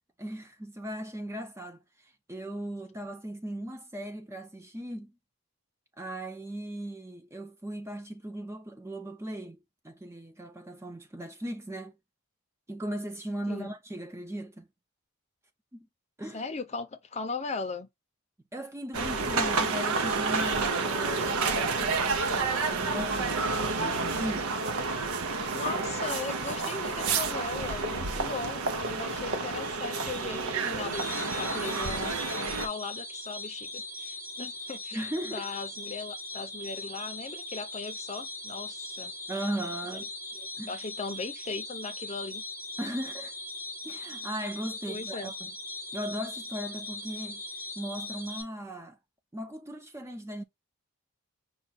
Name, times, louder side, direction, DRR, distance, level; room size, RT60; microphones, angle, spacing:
voice 1, 0.2-5.1 6.0-12.0 12.7-14.7 15.7-15.9 16.2-16.4 18.5-24.5 34.9-35.5 39.3-40.1 40.6-40.8 42.8-43.3 43.8-45.5 45.9-47.4 47.8-49.0 49.3-50.4, right 1 dB, 10° right, 0.5 m, -38 dB
voice 2, 16.3-17.9 25.5-39.1 40.7-42.4 44.9-45.3, left 4 dB, 30° left, 0.6 m, -38 dB
sound 1, 18.9-32.7, right 4 dB, 75° right, 0.7 m, -30 dB
sound 2, 30.9-48.4, left 2 dB, 40° right, 1.8 m, -40 dB
5.5 x 2.3 x 4.0 m
head